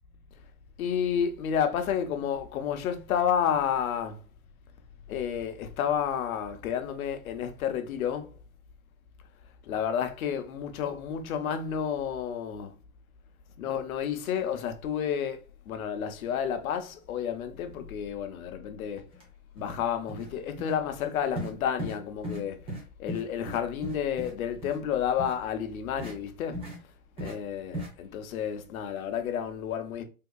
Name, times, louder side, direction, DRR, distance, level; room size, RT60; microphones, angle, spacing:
voice 1, 0.8-4.2 5.1-8.3 9.6-12.7 13.6-19.0 19.5-26.7 27.2-30.0, left 8 dB, 75° left, 0.8 m, -31 dB
sound 1, 19.1-19.2 19.6-19.8 20.1-20.3 20.6-20.7 21.3-21.5 21.8-22.0 22.2-22.4 22.7-22.8 23.1-24.3 24.6-24.8 25.2-25.3 26.0-26.1 26.5-26.8 27.2-27.3 27.7-27.9, equal, 15° right, 0.7 m, -36 dB
3.6 x 2.8 x 2.3 m
supercardioid pair, 155°, 42 cm